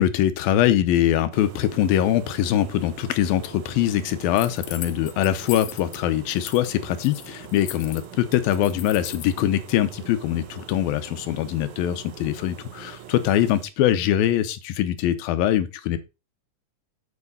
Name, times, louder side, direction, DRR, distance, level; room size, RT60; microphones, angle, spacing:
voice 1, 0.0-16.0, left 11 dB, 90° left, 2.7 m, -23 dB
sound 1, 1.3-13.6, right 9 dB, 85° right, 2.9 m, -43 dB
sound 2, 4.4-6.0 6.3-6.7 6.9-9.3, left 12 dB, 75° left, 2.2 m, -38 dB
7.5 x 7.3 x 3.9 m
omnidirectional pair, 4.1 m